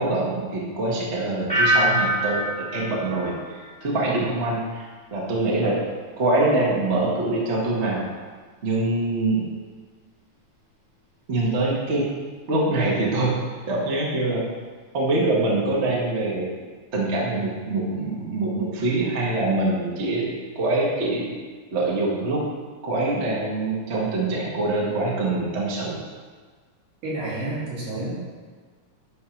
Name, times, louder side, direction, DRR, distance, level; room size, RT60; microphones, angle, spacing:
voice 1, 0.0-4.9 5.1-5.8 6.2-8.0 8.6-9.5 11.3-12.0 12.5-13.3 13.7-14.4 14.9-16.5 16.9-21.3 21.7-22.4 22.8-26.0, right 2 dB, 85° right, -4 dB, 0.6 m, -24 dB
sound 1, 1.5-4.3 4.7-5.1, right 1 dB, 5° left, 0.9 m, -25 dB
voice 2, 27.0-28.2, right 2 dB, 65° right, -9 dB, 4.4 m, -29 dB
10.5 x 3.8 x 5.9 m, 1.5 s
omnidirectional pair, 4.0 m